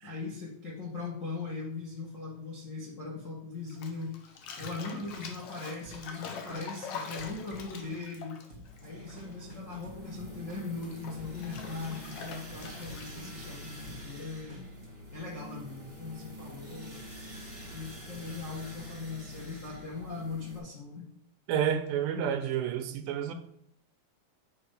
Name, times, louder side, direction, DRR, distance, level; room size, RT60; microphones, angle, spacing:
voice 1, 0.0-8.4 8.8-14.6 15.1-17.0 17.6-21.1, left 4 dB, 55° left, -3 dB, 0.8 m, -40 dB
Bathtub (filling or washing), 3.7-9.5 9.8-13.4, left 5 dB, 85° left, 1.3 m, -44 dB
sound 1, 5.1-14.9, equal, 60° right, 0.6 m, -50 dB
sound 2, 8.6-20.6, equal, 20° right, 0.9 m, -46 dB
voice 2, 21.5-23.3, right 9 dB, 80° right, 7 dB, 2.4 m, -30 dB
8.9 x 3.2 x 6.4 m, 0.73 s
omnidirectional pair, 4.0 m